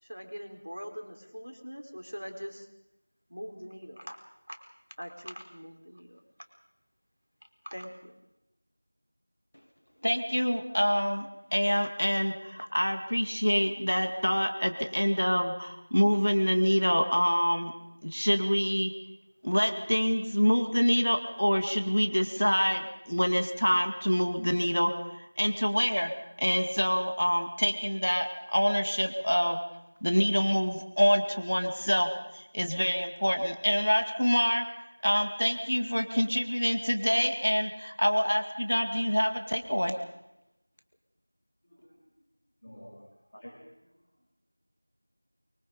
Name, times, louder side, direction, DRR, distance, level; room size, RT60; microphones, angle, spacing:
voice 1, 0.0-2.7 3.3-4.2 4.5-4.6 5.0-6.2 7.6-8.2, equal, 75° right, 4 dB, 4.8 m, -42 dB
voice 2, 10.0-17.7 18.0-18.9 19.4-24.9 25.2-26.1 26.4-29.6 30.0-32.1 32.3-34.6 35.0-40.0, equal, 55° left, 6 dB, 2.2 m, -26 dB
voice 3, 41.6-42.0 42.6-42.9 43.3-43.9, equal, 20° left, -4 dB, 4.1 m, -50 dB
24.5 x 24.0 x 5.2 m, 0.89 s
figure-of-eight pair, 180°, 0 cm